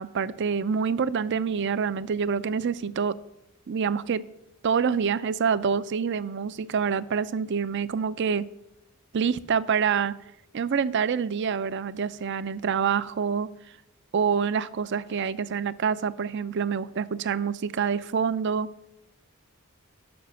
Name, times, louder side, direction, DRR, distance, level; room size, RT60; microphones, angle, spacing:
voice 1, 0.0-3.2 3.7-4.2 4.6-8.5 9.1-10.1 10.5-13.5 14.1-18.7, right 6 dB, 55° right, 17 dB, 0.4 m, -26 dB
10.5 x 5.9 x 6.8 m, 0.86 s
head